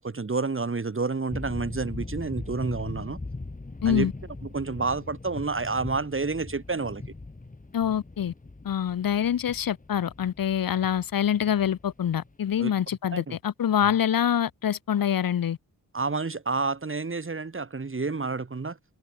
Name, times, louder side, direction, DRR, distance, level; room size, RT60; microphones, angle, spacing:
voice 1, 0.0-3.2 3.9-4.1 4.5-7.0 12.6-12.7 13.1-13.4 15.9-18.8, right 4 dB, 35° right, 2.5 m, -29 dB
sound 1, 1.3-12.8, left 3 dB, 20° left, 2.0 m, -40 dB
voice 2, 7.7-8.3 8.6-15.6, left 9 dB, 65° left, 0.8 m, -25 dB
wide cardioid pair, 115°, 37 cm